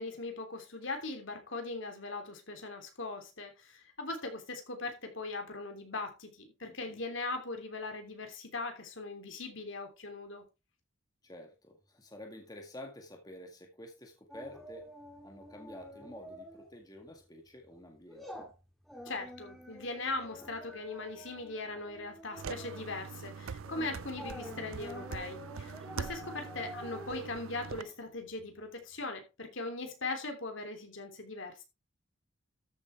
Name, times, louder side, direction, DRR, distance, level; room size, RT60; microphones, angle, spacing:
voice 1, 0.0-10.4 19.0-31.6, left 3 dB, 70° left, 3.2 m, -40 dB
voice 2, 6.6-7.0 11.2-14.9 15.2-18.4 26.4-26.6, left 1 dB, 20° left, 1.9 m, -50 dB
sound 1, 14.3-16.7 17.0-17.2 17.7-28.6 29.0-29.1, equal, ahead, 2.5 m, -48 dB
sound 2, 22.4-27.8, right 5 dB, 85° right, 0.5 m, -43 dB
13.5 x 7.7 x 3.5 m
head